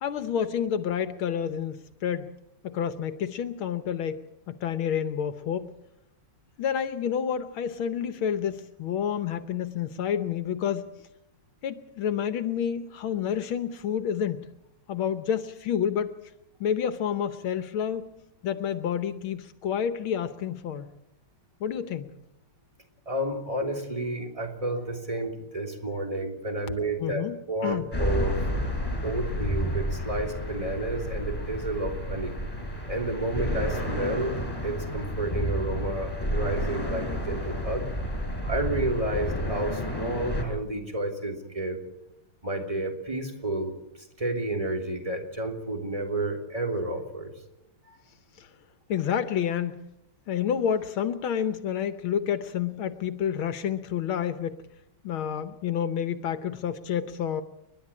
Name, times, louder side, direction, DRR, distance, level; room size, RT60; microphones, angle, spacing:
voice 1, 0.0-2.3 2.6-5.7 6.6-10.9 11.6-14.5 14.9-16.1 16.6-18.0 18.4-20.9 21.6-22.1 27.0-27.4 27.6-27.9 48.9-49.9 50.3-54.6 55.0-57.4, left 8 dB, 75° left, 11 dB, 1.7 m, -29 dB
voice 2, 23.1-28.4 29.0-32.3 32.9-34.4 34.6-37.9 38.4-41.8 42.4-43.7 44.2-47.3 47.9-48.0, right 1 dB, 15° right, 3 dB, 3.2 m, -31 dB
sound 1, 27.9-40.4, equal, 10° left, 5.7 m, -30 dB
30.0 x 12.0 x 8.7 m, 0.85 s
omnidirectional pair, 2.3 m